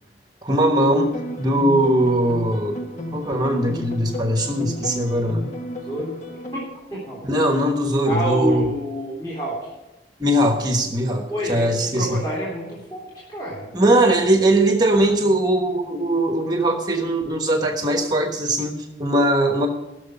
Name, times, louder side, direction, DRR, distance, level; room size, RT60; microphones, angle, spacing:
voice 1, 0.4-5.5 7.2-8.7 10.2-12.2 13.7-19.7, right 1 dB, 20° right, 4 dB, 1.2 m, -20 dB
sound 1, 0.9-6.7, left 1 dB, 40° left, 1.2 m, -33 dB
voice 2, 6.5-7.2 8.1-9.7 11.3-14.0, equal, 20° left, -6 dB, 3.6 m, -28 dB
16.0 x 6.7 x 5.5 m, 1.0 s
head